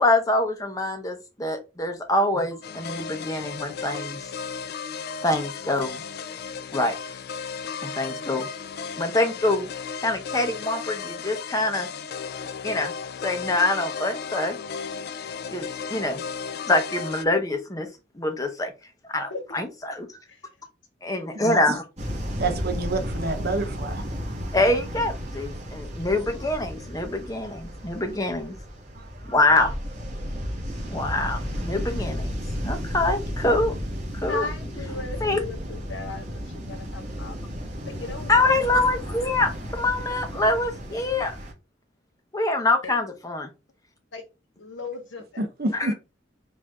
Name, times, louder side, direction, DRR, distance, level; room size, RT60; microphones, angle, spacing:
voice 1, 0.0-4.3 5.2-6.0 6.7-7.2 7.8-8.5 9.0-9.7 10.0-11.9 12.6-12.9 13.2-14.6 15.5-16.2 16.7-17.9 18.1-18.7 19.1-20.1 21.0-21.8 24.5-28.5 29.2-29.8 30.9-32.3 32.6-33.8 34.1-34.4 35.2-35.4 38.3-41.4 42.3-43.5 45.7-45.9, left 2 dB, 20° left, 0.8 m, -25 dB
sound 1, 2.6-17.2, left 6 dB, 55° left, 0.3 m, -35 dB
sound 2, 22.0-41.5, equal, 35° right, 1.7 m, -33 dB
voice 2, 22.4-24.0 29.2-29.3 45.4-45.9, right 2 dB, 55° right, 0.9 m, -28 dB
voice 3, 34.3-37.4 37.8-38.6 42.8-43.0 44.1-44.2 44.6-45.5, left 3 dB, 85° left, 1.1 m, -36 dB
5.1 x 2.7 x 3.6 m
head